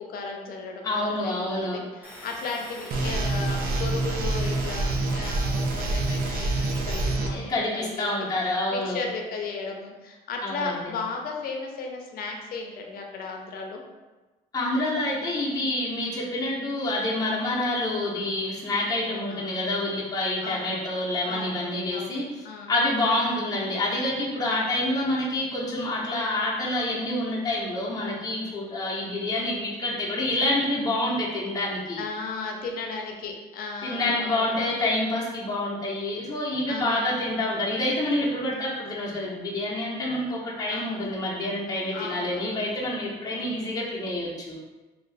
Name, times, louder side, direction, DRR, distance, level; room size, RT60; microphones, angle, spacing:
voice 1, 0.0-8.1 8.7-13.8 19.3-19.6 20.4-20.7 21.3-22.2 22.4-22.7 24.5-24.7 29.3-29.6 32.0-34.5 36.7-37.2 40.7-41.1 41.9-42.6 43.3-43.7, left 4 dB, 60° left, 2 dB, 0.6 m, -35 dB
voice 2, 0.8-1.8 7.3-9.0 10.4-10.9 14.5-32.0 33.8-44.6, left 1 dB, 20° left, -6 dB, 0.8 m, -27 dB
sound 1, 2.0-7.1, left 1 dB, 10° right, 1.0 m, -44 dB
sound 2, 2.9-7.3, right 2 dB, 65° right, 0.5 m, -26 dB
2.7 x 2.5 x 3.2 m, 1.2 s
cardioid pair, 110°, 17 cm